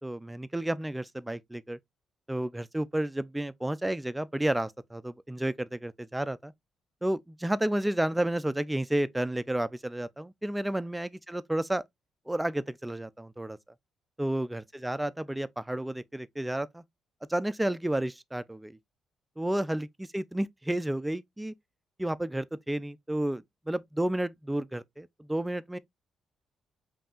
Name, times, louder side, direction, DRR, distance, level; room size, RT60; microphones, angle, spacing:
voice 1, 0.0-1.8 2.3-6.5 7.0-11.8 12.3-13.6 14.2-16.8 17.3-18.8 19.4-21.5 22.0-25.8, right 1 dB, 10° right, 0.3 m, -31 dB
5.3 x 2.7 x 2.3 m
cardioid pair, 90°, 0 cm